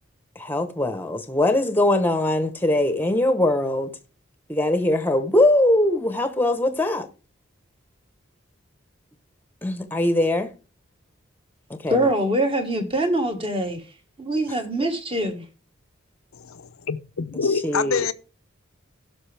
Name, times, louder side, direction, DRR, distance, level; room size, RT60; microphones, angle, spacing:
voice 1, 0.4-3.9 4.5-7.1 9.6-10.5 11.7-12.1 14.8-14.9 17.3-18.1, left 1 dB, 10° left, 1.0 m, -22 dB
voice 2, 11.9-13.8 14.2-15.4, right 1 dB, 25° right, 1.6 m, -23 dB
voice 3, 16.3-18.1, left 5 dB, 85° left, 0.7 m, -26 dB
16.5 x 6.1 x 3.4 m
head